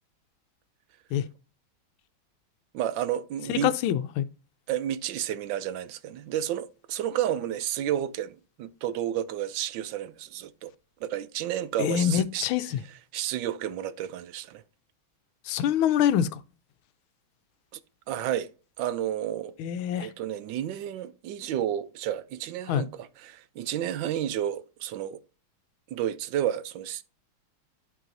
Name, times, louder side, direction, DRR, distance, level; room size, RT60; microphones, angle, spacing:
voice 1, 2.7-3.7 4.7-10.7 11.0-12.5 13.1-14.6 17.7-17.8 18.1-18.5 18.8-19.5 20.0-25.2 25.9-27.0, right 11 dB, 75° right, 1.2 m, -31 dB
voice 2, 3.5-4.3 11.8-12.8 15.5-16.4 19.6-20.1 22.7-22.9, left 10 dB, 85° left, 1.5 m, -25 dB
12.0 x 4.7 x 2.6 m
omnidirectional pair, 2.2 m